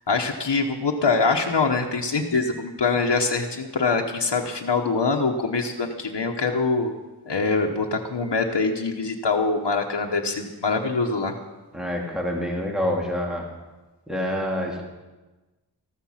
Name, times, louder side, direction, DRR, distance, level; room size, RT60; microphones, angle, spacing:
voice 1, 0.1-6.9 7.3-11.3, left 4 dB, 85° left, 1 dB, 1.2 m, -24 dB
voice 2, 11.7-13.5 14.1-14.8, left 1 dB, ahead, -1 dB, 2.8 m, -27 dB
14.5 x 13.5 x 5.8 m, 1.2 s
wide cardioid pair, 55°, 41 cm